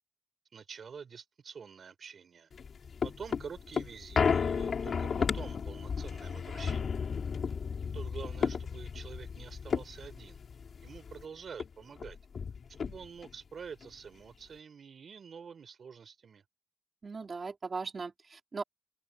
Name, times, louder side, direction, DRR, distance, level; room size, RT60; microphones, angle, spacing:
voice 1, 0.5-2.5 3.0-7.0 7.9-10.4 10.8-12.2 12.8-16.4, right 6 dB, 80° right, 4.5 m, -47 dB
sound 1, 2.5-11.2 11.6-11.7 12.0-13.3 13.8-13.9, left 6 dB, 80° left, 3.3 m, -33 dB
voice 2, 17.0-18.6, right 4 dB, 50° right, 3.9 m, -38 dB
wide cardioid pair, 95°, 0 cm